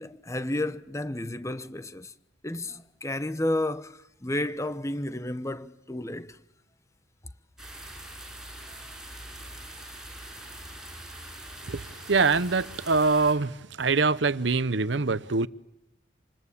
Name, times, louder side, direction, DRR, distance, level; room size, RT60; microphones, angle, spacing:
voice 1, 0.0-2.1 2.4-6.4, left 1 dB, 15° left, 1.0 m, -32 dB
sound 1, 7.6-13.3, right 1 dB, 5° right, 7.7 m, -43 dB
voice 2, 11.6-15.5, right 4 dB, 70° right, 0.9 m, -24 dB
28.0 x 21.0 x 8.6 m
head